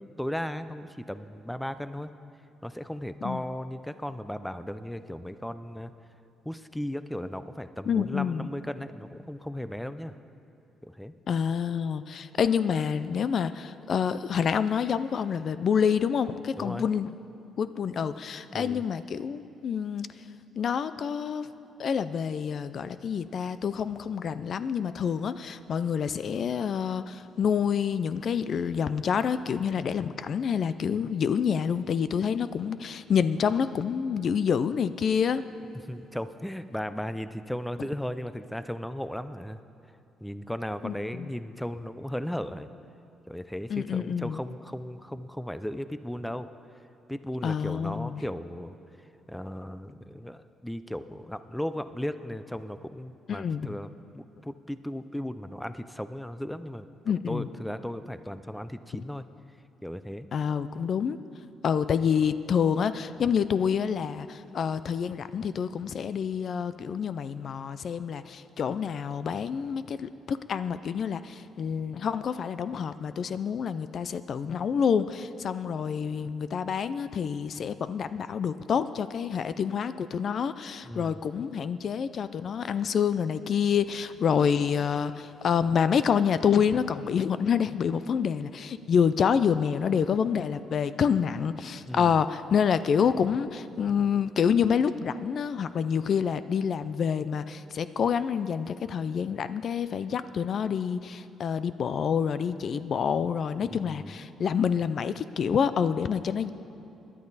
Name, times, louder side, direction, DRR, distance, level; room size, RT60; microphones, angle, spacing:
voice 1, 0.0-2.1 2.6-5.9 6.4-10.2 10.8-11.1 16.5-16.9 18.5-18.8 35.9-39.6 40.2-42.7 43.3-46.5 47.1-48.8 49.3-56.9 57.3-59.3 59.8-60.3 80.9-81.2 91.8-92.2 103.6-104.1, equal, 5° left, 12 dB, 0.5 m, -36 dB
voice 2, 7.9-8.5 11.3-17.1 17.6-20.1 20.6-21.5 21.8-35.4 40.8-41.3 43.7-44.4 47.4-48.2 53.3-53.7 57.1-57.5 60.3-61.2 61.6-106.5, left 7 dB, 55° left, 13 dB, 0.4 m, -27 dB
18.5 x 11.0 x 4.1 m, 2.9 s
cardioid pair, 90°, 0 cm